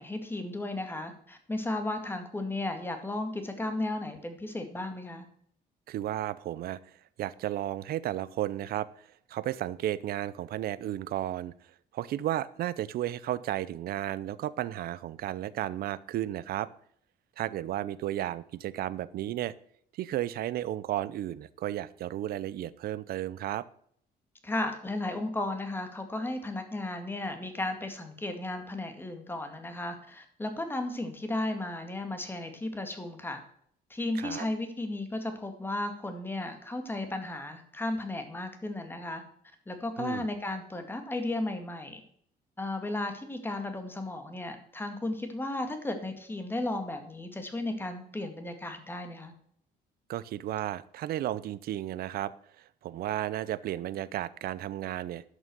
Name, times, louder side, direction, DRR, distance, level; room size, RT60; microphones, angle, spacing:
voice 1, 0.0-5.2 24.4-33.4 33.9-39.2 39.7-42.0 42.6-49.3, left 2 dB, 10° left, 6 dB, 2.1 m, -34 dB
voice 2, 5.9-6.8 7.2-8.9 9.3-11.5 11.9-16.7 17.4-19.5 19.9-23.7 34.1-34.5 40.0-40.3 50.1-55.2, right 13 dB, 65° right, 18 dB, 0.7 m, -33 dB
11.5 x 6.3 x 6.9 m, 0.63 s
cardioid pair, 110°, 17 cm